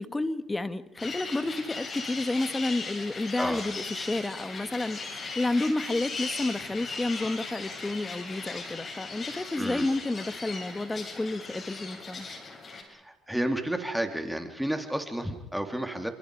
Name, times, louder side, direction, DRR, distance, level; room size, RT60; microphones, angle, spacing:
voice 1, 0.0-12.3, left 2 dB, 20° left, 12 dB, 2.1 m, -30 dB
sound 1, 1.0-12.8, left 4 dB, 45° left, 7.5 m, -38 dB
voice 2, 9.6-9.9 12.9-16.1, right 1 dB, 5° right, 5 dB, 3.5 m, -31 dB
30.0 x 27.0 x 5.1 m, 0.76 s
supercardioid pair, 65°, 0 cm